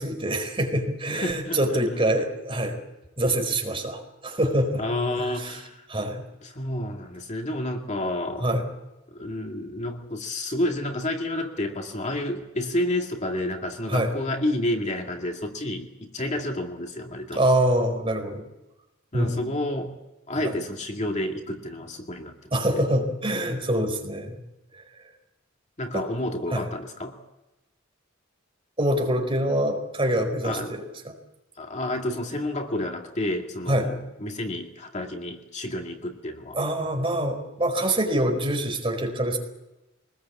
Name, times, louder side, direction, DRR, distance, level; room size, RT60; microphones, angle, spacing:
voice 1, 0.0-2.8 3.2-4.8 5.1-5.6 5.9-6.2 8.4-8.7 13.9-14.1 17.3-18.4 19.1-19.5 20.4-20.5 22.5-24.4 24.7-24.8 25.9-26.0 26.5-26.7 28.8-31.1 33.7-33.9 36.5-39.4, right 1 dB, 25° right, 4 dB, 4.7 m, -25 dB
voice 2, 1.1-1.8 4.8-5.8 6.4-8.6 9.1-17.4 19.1-20.0 20.3-22.4 22.7-22.8 25.8-27.2 30.4-30.8 31.6-36.6, left 1 dB, 35° left, 3 dB, 2.2 m, -30 dB
24.0 x 20.5 x 8.4 m, 0.99 s
head